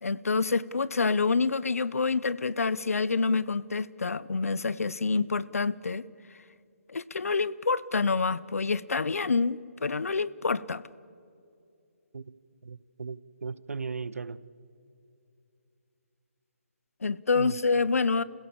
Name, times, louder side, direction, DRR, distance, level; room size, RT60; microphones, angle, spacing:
voice 1, 0.0-6.0 6.9-10.8 17.0-18.2, left 4 dB, 85° left, 0.8 m, -27 dB
voice 2, 12.6-14.4 17.3-17.6, right 5 dB, 85° right, 0.9 m, -37 dB
28.0 x 16.5 x 7.2 m
hypercardioid pair, 170°, 8 cm